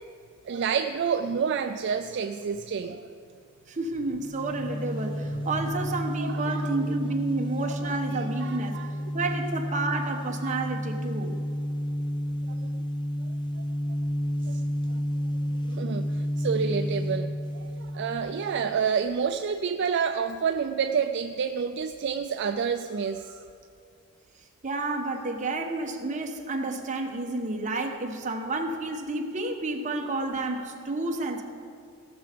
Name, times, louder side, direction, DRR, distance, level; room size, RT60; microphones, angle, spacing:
voice 1, 0.5-3.0 6.2-6.7 7.8-8.9 10.4-10.6 14.4-14.7 15.7-23.4, right 6 dB, 55° right, 7 dB, 0.4 m, -29 dB
voice 2, 3.7-8.8 9.1-11.4 24.6-31.4, right 2 dB, 35° right, 3 dB, 1.0 m, -30 dB
sound 1, 4.2-18.8, equal, 20° left, 0.5 m, -31 dB
16.5 x 6.7 x 5.1 m, 2.4 s
head